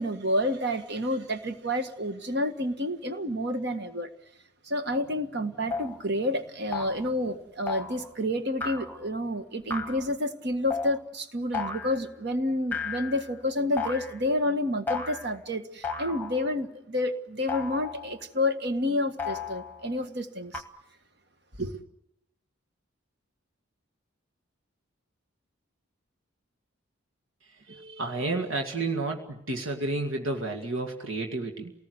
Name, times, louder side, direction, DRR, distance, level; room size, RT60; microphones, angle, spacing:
voice 1, 0.0-4.1 4.7-20.6 21.6-21.7, left 1 dB, 50° right, 1.8 m, -29 dB
sound 1, 5.0-5.1 5.7-6.0 6.7-7.1 7.7-8.1 8.6-9.1 9.7-10.1 10.7-11.0 11.5-12.0 12.7-13.3 13.8-14.2 14.9-15.4 15.8-16.5 17.5-18.2 19.2-19.9 20.5-20.6, left 5 dB, 10° left, 1.3 m, -34 dB
voice 2, 27.7-31.7, right 2 dB, 70° right, 2.1 m, -31 dB
28.0 x 19.0 x 8.1 m
head